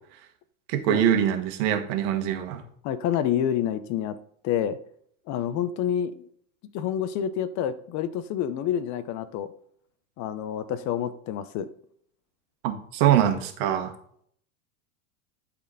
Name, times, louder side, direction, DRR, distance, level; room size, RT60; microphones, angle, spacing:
voice 1, 0.7-2.6 12.6-13.9, right 10 dB, 55° right, 6 dB, 1.6 m, -23 dB
voice 2, 2.8-4.2 4.4-4.8 5.3-6.3 6.7-9.5 10.2-11.7, left 9 dB, 40° left, 14 dB, 0.7 m, -28 dB
12.0 x 4.3 x 4.0 m, 0.63 s
supercardioid pair, 115°, 42 cm